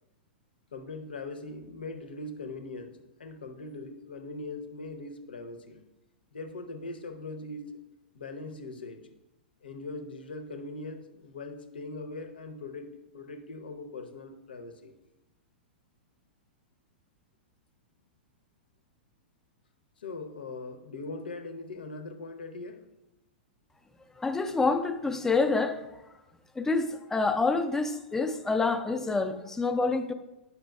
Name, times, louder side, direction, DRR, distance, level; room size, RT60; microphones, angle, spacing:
voice 1, 0.7-2.9 3.2-5.8 6.3-7.8 8.1-9.0 9.6-14.9 20.0-22.8, left 2 dB, 70° left, 0.7 m, -40 dB
voice 2, 24.2-25.8 26.6-30.1, left 3 dB, 10° left, 0.4 m, -27 dB
9.2 x 5.7 x 2.2 m
figure-of-eight pair, 100°, 5 cm